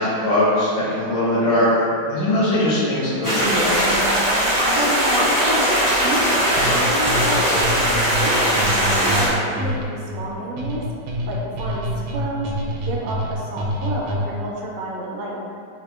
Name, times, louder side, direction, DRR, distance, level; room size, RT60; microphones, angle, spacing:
voice 1, 0.0-3.9, left 1 dB, 80° left, -10 dB, 1.9 m, -20 dB
sound 1, 3.2-9.3, equal, 40° left, 0.4 m, -19 dB
Wind instrument woodwind instrument, 3.7-9.4, equal, 25° right, 0.8 m, -32 dB
voice 2, 4.7-7.7 8.2-10.8 11.3-11.8 12.1-12.5 12.9-15.4, right 2 dB, 75° right, -3 dB, 1.1 m, -29 dB
sound 2, 6.6-14.5, equal, 90° right, 1.4 m, -27 dB
4.2 x 2.7 x 2.3 m, 2.4 s
omnidirectional pair, 2.3 m